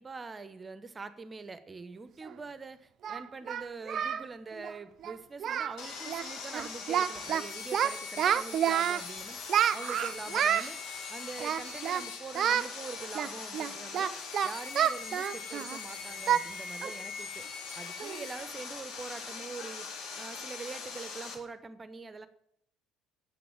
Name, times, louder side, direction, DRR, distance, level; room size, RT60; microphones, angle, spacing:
voice 1, 0.0-9.4 9.7-10.8 11.1-14.1 14.4-17.4 17.7-19.9 20.2-22.3, right 4 dB, 25° right, 13 dB, 1.0 m, -44 dB
Singing, 2.2-2.3 3.0-4.3 4.5-4.7 5.0-5.2 5.4-5.8 6.1-6.3 6.5-7.4 7.7-9.0 9.5-10.7 11.4-12.0 12.4-12.7 13.2-15.8 16.3-16.5 16.8-17.0 17.4-17.5 18.0-18.3, right 9 dB, 45° right, 0.6 m, -29 dB
Sawing, 5.8-21.3, left 5 dB, 55° left, 2.0 m, -41 dB
9.4 x 8.0 x 8.8 m, 0.72 s
figure-of-eight pair, 60°, 0 cm